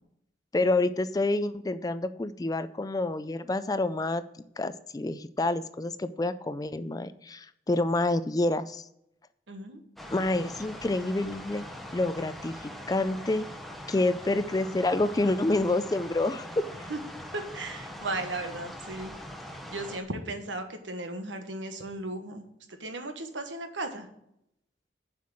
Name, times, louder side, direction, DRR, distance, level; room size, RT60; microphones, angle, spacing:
voice 1, 0.5-4.2 4.6-8.9 10.1-11.6 11.9-13.5 13.9-16.7, left 2 dB, 20° left, 13 dB, 0.4 m, -28 dB
voice 2, 9.5-9.8 16.9-17.0 17.3-19.1 19.7-22.4 22.8-24.1, right 2 dB, 90° right, 6 dB, 1.3 m, -36 dB
sound 1, 10.0-20.0, left 1 dB, ahead, 0.8 m, -42 dB
7.5 x 5.7 x 7.5 m, 0.78 s
head